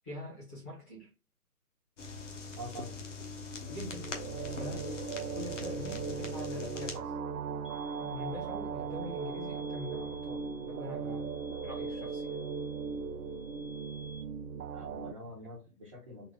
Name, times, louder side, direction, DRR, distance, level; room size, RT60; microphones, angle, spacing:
voice 1, 0.0-1.1 3.7-4.1 4.6-4.9 5.3-7.1 8.0-12.4, left 1 dB, 10° left, 0.8 m, -44 dB
sound 1, 2.0-7.0, left 4 dB, 50° left, 1.0 m, -42 dB
voice 2, 2.6-3.0 14.7-16.3, equal, 20° right, 0.7 m, -45 dB
sound 2, 3.5-15.1, right 5 dB, 85° right, 0.6 m, -38 dB
sound 3, 7.6-14.2, left 2 dB, 80° left, 2.0 m, -54 dB
4.1 x 2.2 x 3.3 m
figure-of-eight pair, 145°, 45 cm